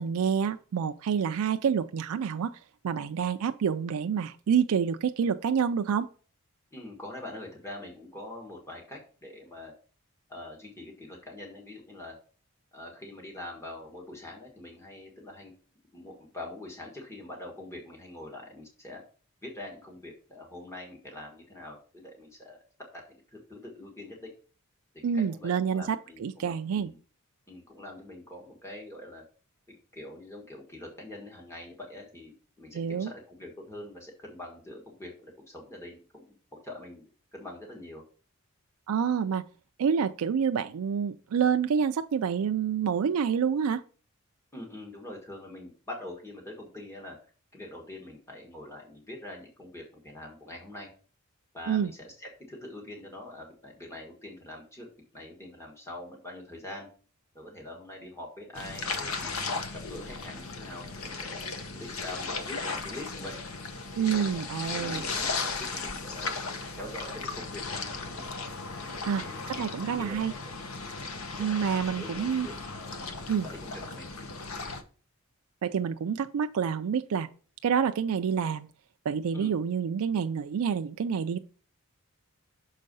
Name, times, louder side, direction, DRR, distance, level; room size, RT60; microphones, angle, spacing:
voice 1, 0.0-2.6 2.8-6.1 25.0-26.9 32.7-33.1 38.9-39.4 39.8-43.8 51.7-51.9 64.0-65.0 69.1-70.3 71.4-72.5 73.3-73.5 75.6-77.3 77.6-78.7 79.1-81.4, right 7 dB, 75° right, 8 dB, 0.4 m, -28 dB
voice 2, 6.7-9.7 10.3-12.2 12.7-15.5 15.9-19.0 19.4-22.6 22.9-23.0 23.3-24.3 25.1-27.0 27.5-29.2 29.9-37.0 37.3-38.0 44.5-47.2 47.5-50.9 51.5-54.9 55.1-56.9 57.3-59.3 59.7-61.5 61.7-63.3 64.0-66.3 66.7-68.3 69.0-69.4 69.8-70.2 71.1-71.6 71.9-73.1 73.4-74.1 79.3-79.5, left 1 dB, 10° left, -1 dB, 1.6 m, -44 dB
sound 1, 58.5-74.8, left 4 dB, 70° left, 0.9 m, -36 dB
6.4 x 4.5 x 5.4 m, 0.40 s
head